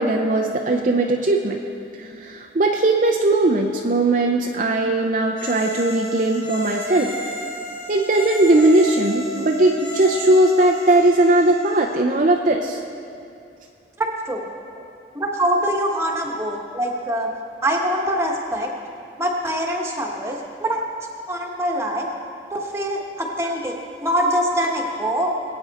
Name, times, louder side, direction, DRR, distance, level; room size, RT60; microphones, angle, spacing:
voice 1, 0.0-1.6 2.0-7.1 7.9-12.8, right 2 dB, 45° right, 1 dB, 0.6 m, -19 dB
sound 1, 5.3-12.0, equal, 60° left, 3.5 m, -32 dB
voice 2, 14.0-14.4 15.1-17.3 17.6-18.7 19.2-20.8 21.3-22.1 22.5-23.7 24.0-25.4, equal, 15° right, 0 dB, 1.3 m, -24 dB
21.0 x 8.9 x 4.2 m, 2.5 s
head